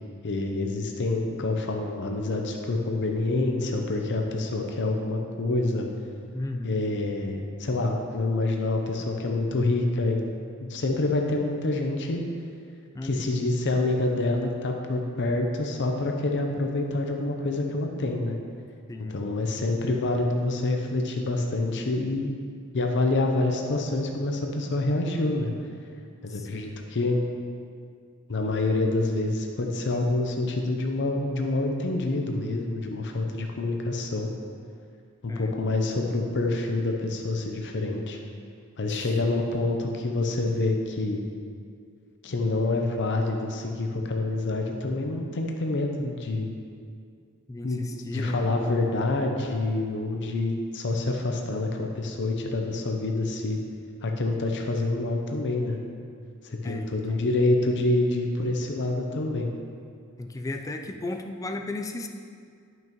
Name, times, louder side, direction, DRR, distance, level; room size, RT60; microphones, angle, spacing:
voice 1, 0.2-5.9 6.6-10.2 10.6-12.2 13.0-18.4 19.1-22.3 22.7-25.5 26.2-27.2 28.3-34.3 35.2-38.2 38.8-41.2 42.2-46.6 47.6-47.8 48.1-53.6 54.0-55.8 56.4-59.5, left 2 dB, 55° left, 2 dB, 0.6 m, -27 dB
voice 2, 6.3-6.8 12.9-13.6 18.9-19.2 26.3-26.7 35.3-35.6 38.9-39.5 47.5-48.4 56.6-57.2 60.2-62.1, left 2 dB, 15° left, 5 dB, 0.3 m, -35 dB
10.5 x 6.0 x 3.0 m, 2.3 s
head